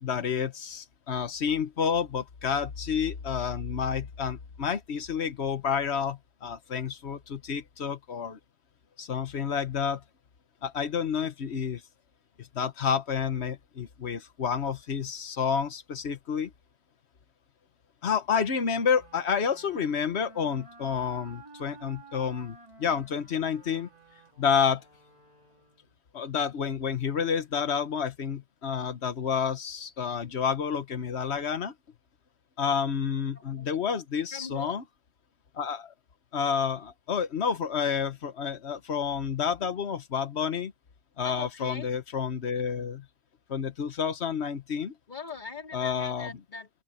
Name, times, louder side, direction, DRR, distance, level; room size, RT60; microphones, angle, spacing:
voice 1, 0.0-8.4 9.0-10.0 10.6-11.8 12.4-16.5 18.0-23.9 24.4-24.8 26.1-31.7 32.6-34.8 35.6-35.9 36.3-40.7 41.2-43.0 43.5-44.9 45.7-46.3, left 7 dB, 90° left, 1.4 m, -29 dB
sound 1, 18.6-26.0, right 3 dB, 30° right, 2.9 m, -53 dB
voice 2, 33.3-33.8 34.3-34.8 41.2-41.9 45.1-46.7, left 5 dB, 45° left, 3.5 m, -41 dB
open air
omnidirectional pair, 1.1 m